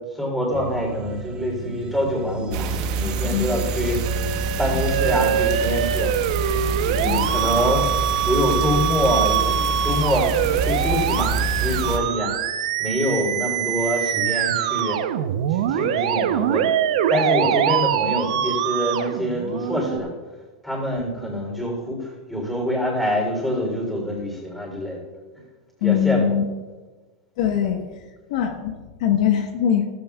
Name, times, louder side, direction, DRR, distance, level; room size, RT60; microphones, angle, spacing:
voice 1, 0.1-4.0 4.6-6.1 6.8-7.9 8.2-12.3 12.8-15.0 15.5-16.7 17.1-20.1 20.6-25.0 25.8-26.3, equal, ahead, -1 dB, 3.4 m, -25 dB
sound 1, 0.5-5.9, right 4 dB, 25° right, 0.8 m, -34 dB
sound 2, 2.5-12.0, right 4 dB, 50° right, 1.1 m, -26 dB
Musical instrument, 4.1-20.0, right 10 dB, 75° right, 0.8 m, -24 dB
voice 2, 4.3-4.8 7.0-7.3 25.8-26.5 27.4-27.9 28.3-28.7 29.0-29.9, left 9 dB, 65° left, 4 dB, 1.3 m, -22 dB
15.0 x 14.5 x 2.4 m, 1.3 s
supercardioid pair, 155°, 4 cm